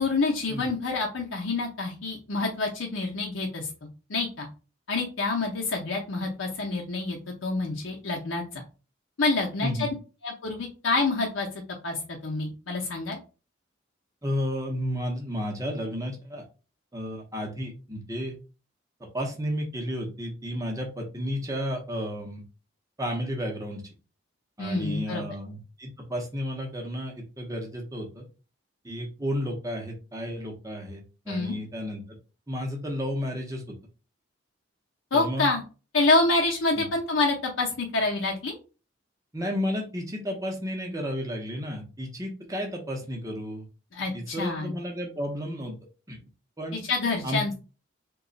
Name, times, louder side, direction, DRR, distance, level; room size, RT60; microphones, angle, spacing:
voice 1, 0.0-3.7 4.1-4.5 4.9-8.6 9.2-9.9 10.2-11.5 11.8-13.2 24.6-25.2 31.3-31.6 35.1-35.6 35.9-38.5 43.9-44.7 46.7-47.5, left 3 dB, 70° left, -1 dB, 0.7 m, -27 dB
voice 2, 14.2-16.4 16.9-18.4 19.0-22.4 23.0-23.8 24.6-28.2 28.8-32.0 32.5-33.7 35.1-35.5 36.8-36.9 39.3-43.7 44.1-45.8 46.1-46.2 46.6-46.8 47.2-47.5, equal, 15° right, 1 dB, 0.7 m, -32 dB
2.9 x 2.3 x 3.9 m, 0.33 s
head